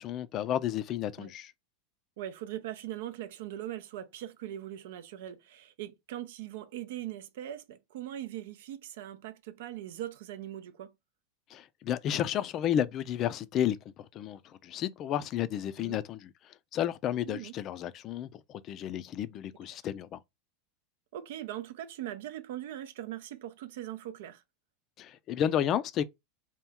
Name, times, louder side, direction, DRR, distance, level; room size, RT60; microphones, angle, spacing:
voice 1, 0.0-1.5 11.5-20.2 25.0-26.0, left 10 dB, 40° left, 0.4 m, -32 dB
voice 2, 2.2-10.9 15.8-16.0 17.2-17.5 21.1-24.4, right 12 dB, 75° right, 0.5 m, -41 dB
2.9 x 2.3 x 3.5 m
supercardioid pair, 115°, 0 cm